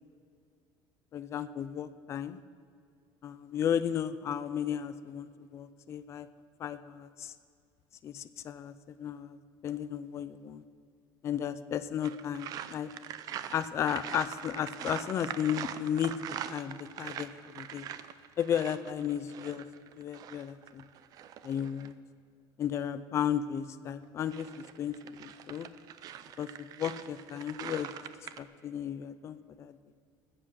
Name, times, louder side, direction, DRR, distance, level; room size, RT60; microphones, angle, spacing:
voice 1, 1.1-2.4 3.2-6.3 6.6-7.3 8.0-8.7 9.0-9.4 9.6-10.6 11.2-12.9 13.5-16.1 16.5-17.3 17.6-17.9 18.4-19.6 20.0-20.8 21.4-22.0 22.6-24.5 24.8-25.7 26.4-27.9 28.4-29.8, left 9 dB, 30° left, 12 dB, 0.5 m, -34 dB
sound 1, 12.0-21.9 24.0-28.4, right 10 dB, 40° right, 0.5 m, -43 dB
20.0 x 7.9 x 6.4 m, 2.3 s
cardioid pair, 170°, 9 cm